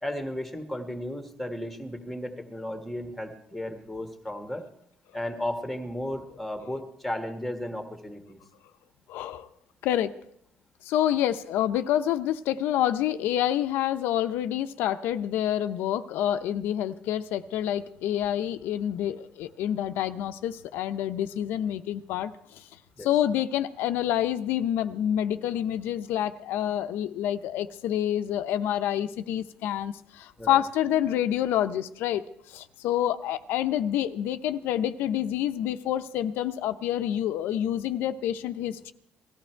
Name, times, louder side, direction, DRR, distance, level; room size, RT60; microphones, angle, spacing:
voice 1, 0.0-4.6 5.1-8.4 23.0-23.1 30.4-30.6, left 1 dB, ahead, 5 dB, 1.6 m, -34 dB
voice 2, 9.1-9.5 9.8-10.1 10.8-22.6 23.0-32.2 32.5-38.9, left 11 dB, 85° left, 9 dB, 0.7 m, -27 dB
18.5 x 14.0 x 4.5 m, 0.72 s
cardioid pair, 160°, 4 cm